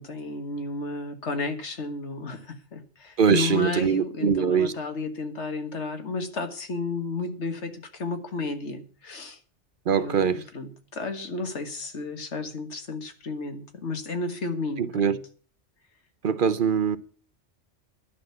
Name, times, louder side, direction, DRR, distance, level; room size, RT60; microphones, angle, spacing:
voice 1, 0.0-9.4 10.0-15.2, left 3 dB, 80° left, 1.9 m, -32 dB
voice 2, 3.2-4.7 9.9-10.4 14.8-15.2 16.2-17.0, right 7 dB, 55° right, 0.7 m, -22 dB
11.0 x 6.3 x 8.3 m
omnidirectional pair, 1.2 m